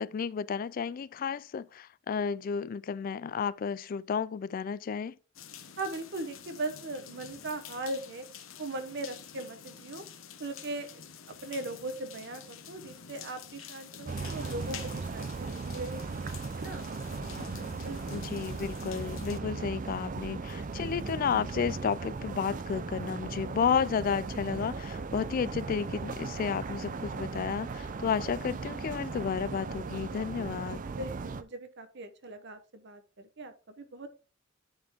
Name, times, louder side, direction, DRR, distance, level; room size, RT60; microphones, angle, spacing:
voice 1, 0.0-5.2 18.1-30.8, left 6 dB, 45° left, 0.3 m, -32 dB
sound 1, 5.3-19.4, left 7 dB, 75° left, 1.0 m, -48 dB
voice 2, 5.8-8.2 8.6-10.0 10.4-11.1 11.4-16.2 16.6-16.9 17.8-18.2 31.0-34.1, right 2 dB, 60° right, 0.9 m, -39 dB
sound 2, 14.1-31.4, right 4 dB, 40° right, 0.4 m, -37 dB
10.5 x 4.3 x 3.5 m
head